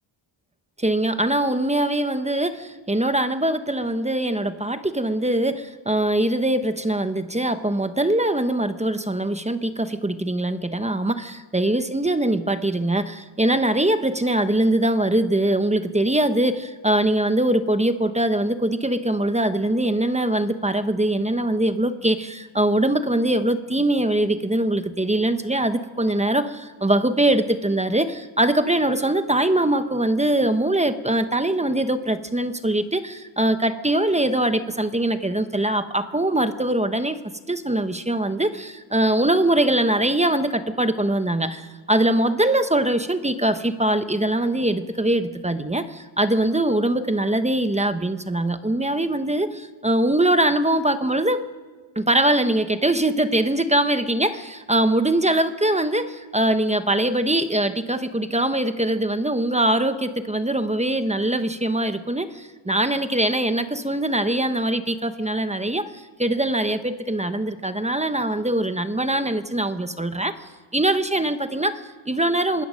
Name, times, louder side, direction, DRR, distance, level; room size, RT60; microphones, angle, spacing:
voice 1, 0.8-37.2 37.5-51.5 52.0-72.6, right 1 dB, 15° right, 10 dB, 0.9 m, -22 dB
26.0 x 20.0 x 6.4 m, 1.4 s
wide cardioid pair, 155°, 48 cm